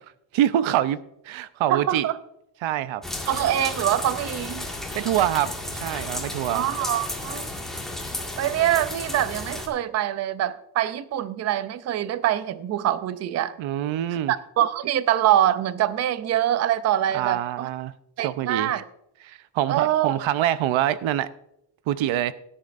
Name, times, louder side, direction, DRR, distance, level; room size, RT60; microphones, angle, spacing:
voice 1, 0.3-1.0 1.2-2.1 2.6-3.0 4.9-6.6 13.6-14.3 17.1-18.7 19.2-21.3 21.9-22.3, right 12 dB, 85° right, 0.7 m, -25 dB
voice 2, 1.7-2.1 3.3-4.6 6.5-7.5 8.4-13.6 14.3-17.7 18.2-18.8 19.7-20.2, right 12 dB, 35° right, 0.4 m, -24 dB
sound 1, 3.0-9.7, left 1 dB, ahead, 1.8 m, -33 dB
17.0 x 10.0 x 2.5 m
cardioid pair, 150°, 46 cm